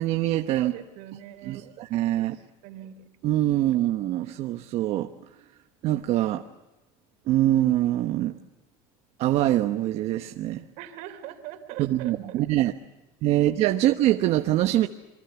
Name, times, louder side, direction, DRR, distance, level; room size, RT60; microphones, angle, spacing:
voice 1, 0.0-0.7 1.5-2.3 3.2-5.1 5.8-6.4 7.3-8.4 9.2-10.7 11.8-12.7 13.2-14.9, right 14 dB, 55° right, 7 dB, 1.1 m, -24 dB
voice 2, 0.5-1.8 2.2-3.1 10.8-12.7, right 12 dB, 70° right, 8 dB, 3.2 m, -42 dB
28.0 x 24.0 x 7.1 m, 1.1 s
cardioid pair, 140°, 13 cm